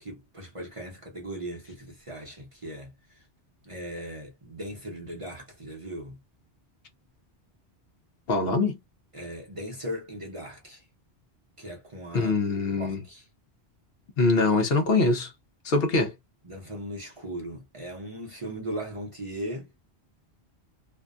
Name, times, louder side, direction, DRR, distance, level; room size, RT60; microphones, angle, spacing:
voice 1, 0.0-3.2 3.6-6.2 9.1-10.9 11.6-12.3 12.8-13.3 16.4-19.7, right 1 dB, 35° right, 0.7 m, -38 dB
voice 2, 8.3-8.8 12.1-13.0 14.2-15.3 15.6-16.1, left 3 dB, 65° left, 0.9 m, -23 dB
2.6 x 2.2 x 2.4 m
omnidirectional pair, 1.1 m